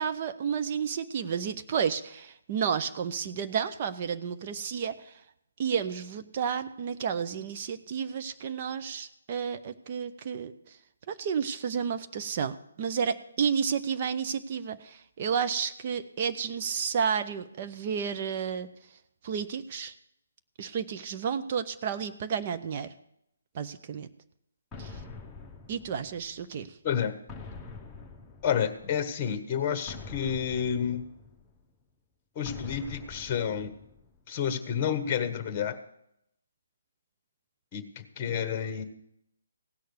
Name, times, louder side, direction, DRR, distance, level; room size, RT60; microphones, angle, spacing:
voice 1, 0.0-5.1 5.6-10.5 11.1-18.7 19.2-19.9 20.6-22.9 23.5-24.1 24.8-25.0 25.7-26.7, right 7 dB, 35° right, 8 dB, 0.8 m, -31 dB
sound 1, 24.7-26.5 27.3-29.0 29.9-31.7 32.5-34.2, left 3 dB, 10° left, 1.2 m, -45 dB
voice 2, 26.8-27.1 28.4-31.1 32.3-33.7 34.3-35.8 37.7-38.8, left 8 dB, 25° left, 10 dB, 1.3 m, -30 dB
16.5 x 6.6 x 8.0 m, 0.76 s
figure-of-eight pair, 140°, 0 cm